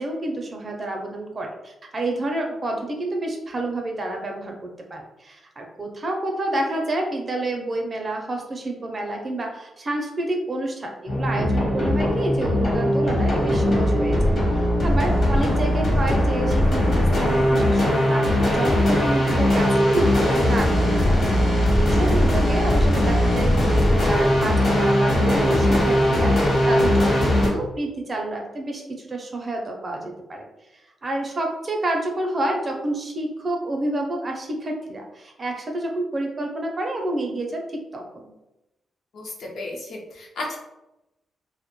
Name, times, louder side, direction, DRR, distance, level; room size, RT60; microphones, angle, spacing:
voice 1, 0.0-30.5 31.0-38.3, right 1 dB, 35° right, 2 dB, 0.5 m, -29 dB
sound 1, 11.1-27.5, left 1 dB, 50° left, 1.0 m, -19 dB
voice 2, 39.1-40.6, left 2 dB, 70° left, 0 dB, 0.6 m, -34 dB
2.1 x 2.1 x 2.9 m, 0.93 s
cardioid pair, 115°, 0 cm